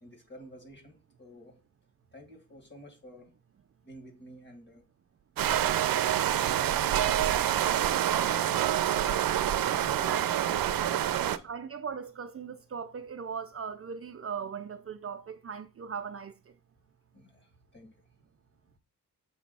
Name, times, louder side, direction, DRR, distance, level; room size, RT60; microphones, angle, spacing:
voice 1, 0.0-1.6 2.1-3.3 3.8-4.8 5.5-6.0 6.3-6.8 8.9-11.4 17.1-17.9, left 1 dB, 30° left, 1.8 m, -51 dB
sound 1, 5.4-11.4, right 11 dB, 90° right, 0.5 m, -27 dB
voice 2, 11.2-16.5, right 6 dB, 45° right, 0.4 m, -39 dB
6.8 x 3.1 x 5.4 m
wide cardioid pair, 170°, 34 cm